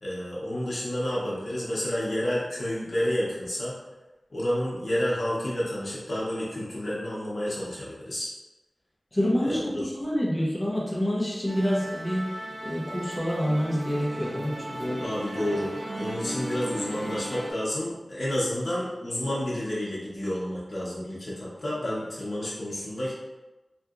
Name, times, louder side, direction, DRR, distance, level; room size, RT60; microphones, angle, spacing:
voice 1, 0.0-3.8 4.3-8.3 9.4-9.8 15.0-15.7 16.0-23.1, equal, 75° left, -7 dB, 0.8 m, -30 dB
voice 2, 9.1-12.3 12.6-15.1, equal, 25° left, -5 dB, 0.7 m, -27 dB
Musical instrument, 11.5-17.5, right 1 dB, 70° right, 0.5 m, -36 dB
2.8 x 2.4 x 2.4 m, 1.1 s
wide cardioid pair, 80°, 0 cm